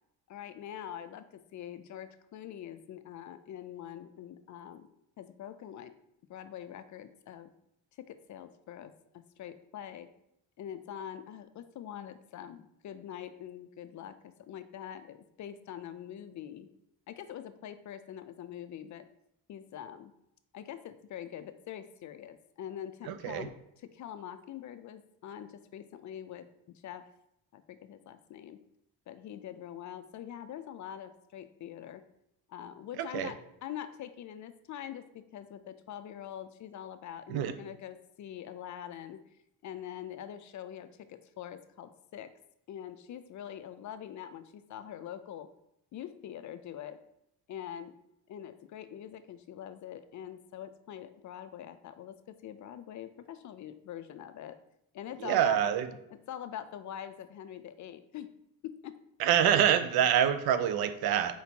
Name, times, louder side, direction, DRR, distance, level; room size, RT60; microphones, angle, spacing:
voice 1, 0.3-4.9 5.2-5.9 6.3-7.5 8.0-10.1 10.6-16.7 17.1-19.1 19.5-20.1 20.5-26.5 26.8-27.1 27.5-28.6 29.1-32.0 32.5-39.2 39.6-42.3 42.7-45.5 45.9-47.0 47.5-47.9 48.3-54.6 54.9-55.7 56.3-58.3 58.6-59.0, left 10 dB, 50° left, 11 dB, 0.4 m, -44 dB
voice 2, 23.1-23.5 33.0-33.3 37.3-37.5 55.2-55.9 59.2-61.4, right 9 dB, 80° right, 10 dB, 0.5 m, -26 dB
4.4 x 4.2 x 2.8 m, 0.77 s
cardioid pair, 95°, 37 cm